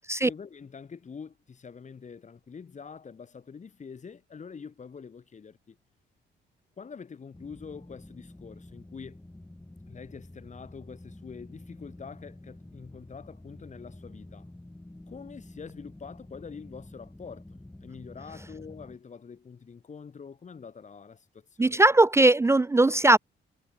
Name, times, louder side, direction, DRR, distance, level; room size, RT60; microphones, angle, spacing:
voice 1, 0.2-5.8 6.8-9.2 9.9-14.5 15.1-21.8, left 6 dB, 40° left, 2.4 m, -45 dB
sound 1, 7.3-19.0, left 1 dB, 10° left, 5.3 m, -48 dB
voice 2, 21.6-23.2, right 2 dB, 15° right, 0.3 m, -19 dB
cardioid pair, 90°, 20 cm